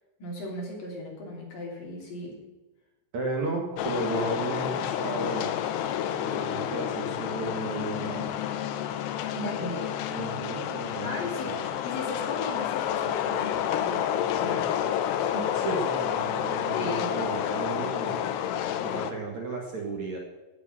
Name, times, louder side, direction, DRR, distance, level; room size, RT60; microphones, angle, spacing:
voice 1, 0.2-2.4 9.3-9.9 11.0-14.1 14.4-14.8 15.1-15.4 16.7-17.1, left 2 dB, 55° left, -2 dB, 4.7 m, -36 dB
voice 2, 3.1-5.5 6.2-8.4 10.1-11.1 11.4-11.6 15.5-18.2 18.8-20.2, right 3 dB, 50° right, -1 dB, 2.6 m, -34 dB
sound 1, 3.8-19.1, left 10 dB, 85° left, 3.0 m, -29 dB
17.5 x 6.9 x 6.2 m, 1.2 s
omnidirectional pair, 4.9 m